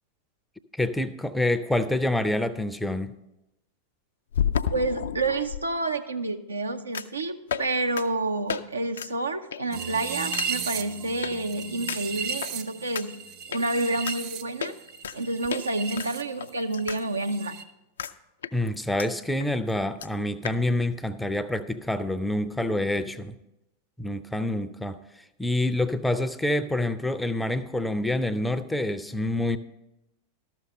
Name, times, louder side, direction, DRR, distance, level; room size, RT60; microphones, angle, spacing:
voice 1, 0.7-3.2 18.5-23.4 24.0-25.0 25.4-29.6, left 1 dB, 5° left, 11 dB, 0.5 m, -27 dB
sound 1, 4.3-5.6 6.9-7.2 7.5-7.7 8.0-8.1 8.5-8.6 8.9-9.1 9.5-9.8 10.3-10.5 11.2-11.3 11.9-12.5 12.9-13.0 13.5-13.6 14.1-14.2 14.6-15.2 15.5-15.6 16.0-17.0 17.3-17.4 18.0-18.1 18.4-19.1 19.4-19.5 19.7-19.8 20.0-20.1 20.4-20.6, left 8 dB, 65° left, 0.4 m, -31 dB
voice 2, 4.7-13.2 13.5-14.7 15.1-17.6, right 2 dB, 80° right, 6 dB, 0.6 m, -29 dB
sound 2, 9.7-16.2 16.5-17.6, right 6 dB, 40° right, 0.7 m, -35 dB
13.0 x 6.3 x 5.3 m, 0.93 s
figure-of-eight pair, 90°, 0 cm